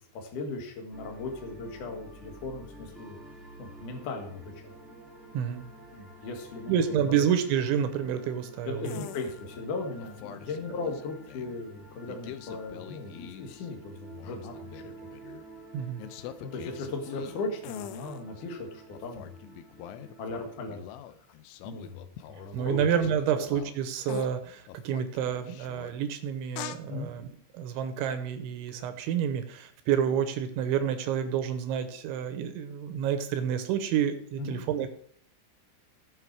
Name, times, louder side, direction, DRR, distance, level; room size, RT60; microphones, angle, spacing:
voice 1, 0.1-3.2 3.6-4.7 5.9-6.8 7.1-7.2 8.7-14.8 16.4-19.3 19.9-20.9 21.6-22.8 23.3-23.4 26.9-27.1 34.4-34.6, left 3 dB, 55° left, 2 dB, 2.6 m, -37 dB
sound 1, 0.9-20.6, right 2 dB, ahead, 0.3 m, -50 dB
voice 2, 6.7-9.0 10.7-10.8 15.7-16.1 22.5-34.9, right 8 dB, 80° right, 8 dB, 3.2 m, -29 dB
sound 2, 8.8-9.4 10.0-11.6 12.1-13.7 13.9-15.4 16.0-18.4 18.9-23.8 24.1-24.3 24.7-25.9 26.5-26.8, left 12 dB, 85° left, 3.2 m, -44 dB
17.0 x 5.8 x 4.7 m, 0.64 s
omnidirectional pair, 5.6 m